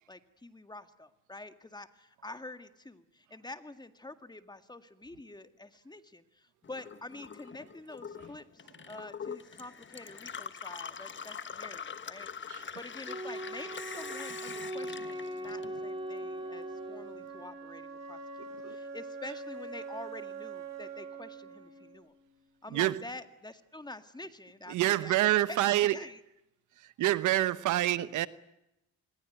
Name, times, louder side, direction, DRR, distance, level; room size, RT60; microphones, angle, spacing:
voice 1, 0.1-18.2 18.7-22.1 22.6-25.2 25.5-26.2, left 2 dB, 15° left, 1.9 m, -47 dB
Gurgling / Water tap faucet / Sink (filling or washing), 6.6-16.2 16.5-17.4, left 6 dB, 40° left, 1.5 m, -44 dB
Wind instrument woodwind instrument, 13.1-17.5, right 1 dB, 15° right, 4.5 m, -40 dB
Wind instrument woodwind instrument 2, 14.7-22.8, right 4 dB, 60° right, 4.9 m, -45 dB
voice 2, 22.7-23.0 24.7-26.0 26.8-28.3, right 15 dB, 85° right, 1.1 m, -27 dB
26.5 x 21.5 x 9.3 m
cardioid pair, 90°, 30 cm